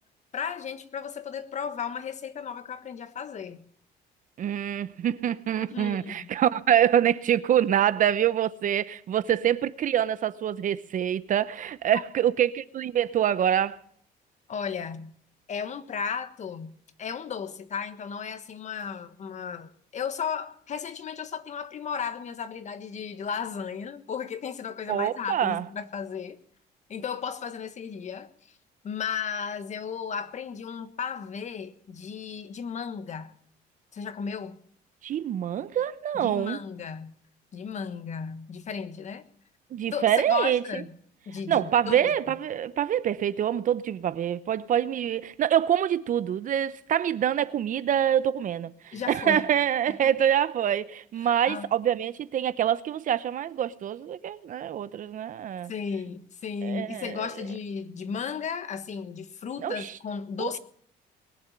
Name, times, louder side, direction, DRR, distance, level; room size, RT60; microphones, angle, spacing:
voice 1, 0.3-3.6 5.7-6.3 14.5-15.1 15.5-16.7 17.0-26.4 26.9-28.3 28.8-33.3 33.9-34.6 36.1-37.1 37.5-39.2 39.9-40.9 41.3-42.1 48.9-49.4 49.9-50.1 51.2-51.7 55.7-60.6, left 6 dB, 45° left, 1.5 m, -35 dB
voice 2, 4.4-13.8 24.9-25.6 35.0-36.6 39.7-40.8 41.5-55.7 56.6-57.3 59.6-59.9 60.4-60.5, right 10 dB, 50° right, 0.8 m, -25 dB
21.5 x 7.3 x 8.6 m
cardioid pair, 110°, 17 cm